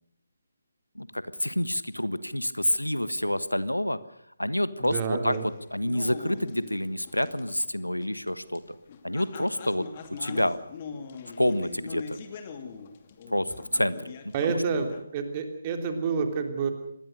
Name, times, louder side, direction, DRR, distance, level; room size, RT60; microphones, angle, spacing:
voice 1, 0.9-4.0 4.4-8.8 9.0-10.6 11.4-12.2 13.3-14.1 14.4-14.6, left 1 dB, 85° left, 15 dB, 1.4 m, -28 dB
voice 2, 4.8-5.4 14.3-16.7, right 5 dB, 25° right, 5 dB, 3.2 m, -29 dB
sound 1, 5.3-15.0, left 5 dB, 30° left, 2.5 m, -42 dB
26.0 x 20.0 x 6.7 m, 0.71 s
figure-of-eight pair, 145°, 0 cm